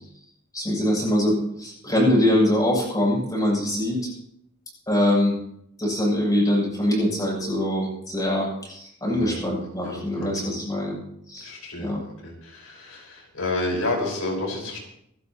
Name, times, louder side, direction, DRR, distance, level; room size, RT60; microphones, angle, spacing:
voice 1, 0.5-4.1 4.9-5.4 5.8-11.0 11.3-11.5 11.8-12.0, left 1 dB, 15° left, -5 dB, 7.8 m, -23 dB
voice 2, 9.1-9.5 9.8-10.5 11.4-11.9 12.2-14.8, left 2 dB, 75° left, 0 dB, 5.2 m, -30 dB
27.0 x 12.5 x 3.0 m, 0.73 s
head